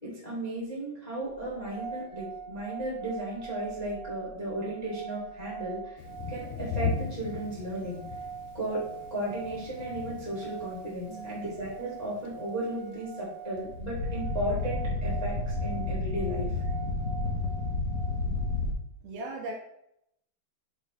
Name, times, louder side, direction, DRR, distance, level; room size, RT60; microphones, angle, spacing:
voice 1, 0.0-8.0 8.5-8.8 9.1-16.5, right 1 dB, 20° left, -6 dB, 1.2 m, -35 dB
sound 1, 1.4-18.6, right 7 dB, 20° right, 1.6 m, -43 dB
Thunder, 6.0-12.8, left 5 dB, 85° left, 2.0 m, -38 dB
voice 2, 11.1-11.5 19.0-19.5, right 2 dB, 70° right, 0 dB, 2.8 m, -38 dB
sound 2, 13.6-18.7, left 2 dB, 60° left, 2.0 m, -31 dB
6.9 x 4.5 x 4.3 m, 0.76 s
omnidirectional pair, 4.8 m